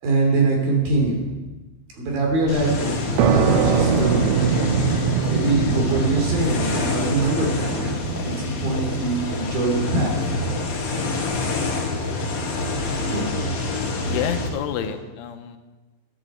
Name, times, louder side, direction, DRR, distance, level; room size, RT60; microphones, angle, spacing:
voice 1, 0.0-1.2 2.0-2.9 3.3-4.6 5.3-10.4 13.1-13.3 14.8-14.9, right 3 dB, 50° right, 0 dB, 4.5 m, -23 dB
sound 1, 2.5-14.5, left 2 dB, 50° left, 3.3 m, -27 dB
sound 2, 3.2-3.4 3.8-3.9 4.4-4.6 5.1-5.3 5.7-5.9 6.4-6.6 7.0-7.2 7.6-7.8 8.2-8.3 8.7-8.9 9.3-9.5 9.9-10.1 10.4-10.6 10.9-11.1 11.5-11.7 12.0-12.2 12.6-12.7 13.1-13.8 14.2-14.5, left 2 dB, 5° left, 2.7 m, -37 dB
sound 3, 3.2-10.6, right 6 dB, 75° right, 3.1 m, -23 dB
voice 2, 14.0-15.6, left 9 dB, 85° left, 8 dB, 3.4 m, -29 dB
12.0 x 11.5 x 7.6 m, 1.2 s
omnidirectional pair, 5.5 m